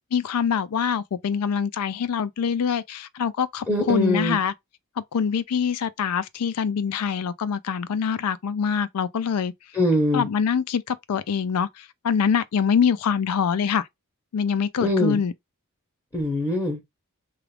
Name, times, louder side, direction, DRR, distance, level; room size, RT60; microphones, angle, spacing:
voice 1, 0.1-4.5 5.0-9.5 10.1-13.9 14.3-15.3, left 7 dB, 85° left, 0.4 m, -24 dB
voice 2, 3.7-4.4 9.7-10.3 14.8-15.2 16.1-16.8, left 1 dB, 15° left, 0.7 m, -23 dB
3.0 x 2.3 x 3.2 m
head